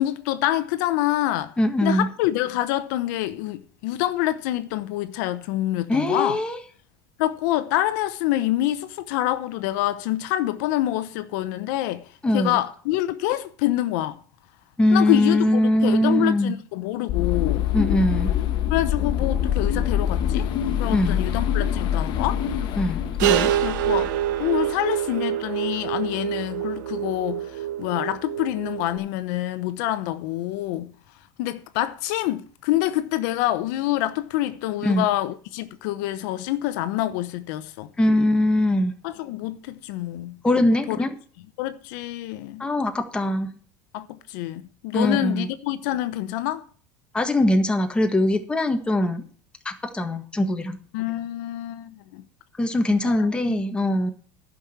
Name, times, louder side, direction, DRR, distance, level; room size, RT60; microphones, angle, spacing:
voice 1, 0.0-1.5 1.8-6.4 7.2-14.2 14.9-17.7 18.7-20.5 20.8-22.5 23.6-24.1 24.4-30.9 31.4-37.9 39.0-40.4 40.7-41.0 41.6-42.7 43.9-46.6 50.9-52.2 53.0-53.2 53.5-53.6, left 14 dB, 75° left, 0.9 m, -26 dB
voice 2, 1.6-2.1 5.9-6.6 12.2-12.6 14.8-16.5 17.7-18.3 20.9-21.2 22.8-23.5 34.8-35.0 38.0-38.9 40.4-41.1 42.6-43.5 44.9-45.5 47.1-49.2 49.6-50.8 52.6-54.1, left 1 dB, 10° left, 1.5 m, -21 dB
sound 1, 17.1-24.5, left 9 dB, 50° left, 1.2 m, -25 dB
sound 2, 23.2-29.0, right 12 dB, 80° right, 1.1 m, -26 dB
11.0 x 6.3 x 7.1 m
supercardioid pair, 135°, 10 cm